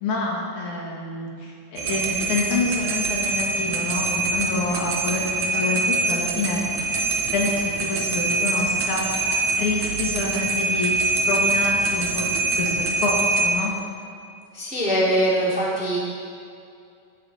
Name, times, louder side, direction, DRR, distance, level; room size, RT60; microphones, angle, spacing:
voice 1, 0.0-6.6 7.3-7.5 7.9-9.0 9.6-11.0 11.2-12.3 12.6-13.7, left 2 dB, 65° left, -2 dB, 2.9 m, -27 dB
sound 1, 1.8-13.5, right 3 dB, 65° right, 2.4 m, -24 dB
voice 2, 14.5-16.0, right 1 dB, 5° right, -6 dB, 2.2 m, -22 dB
16.5 x 11.0 x 4.2 m, 2.4 s
omnidirectional pair, 3.8 m